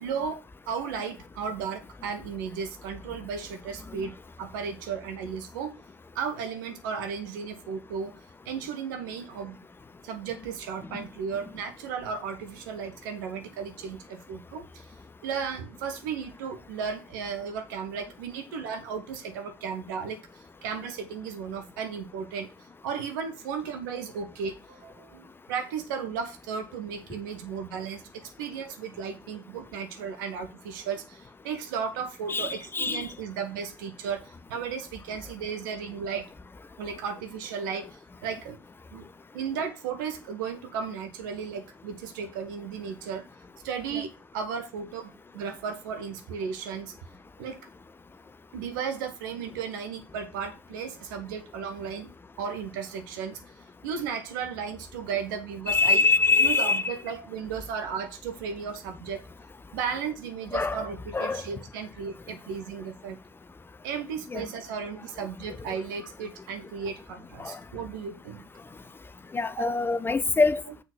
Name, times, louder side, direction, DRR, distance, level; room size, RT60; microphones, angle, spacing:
voice 1, 0.0-5.8 6.1-8.1 8.4-9.6 10.0-14.9 15.2-22.5 22.8-36.3 36.8-38.6 38.9-39.0 39.3-43.3 43.6-46.9 47.4-47.6 48.5-52.1 52.4-53.4 53.8-56.0 56.4-59.2 59.7-63.2 63.8-68.4 69.6-69.7, right 6 dB, 80° right, 1.2 m, -35 dB
voice 2, 32.3-33.1 43.9-44.0 55.7-57.0 60.5-60.8 61.1-61.4 64.3-64.5 67.4-67.6 69.3-70.8, left 3 dB, 20° left, 0.7 m, -24 dB
6.8 x 4.0 x 6.6 m
hypercardioid pair, 60°, 11 cm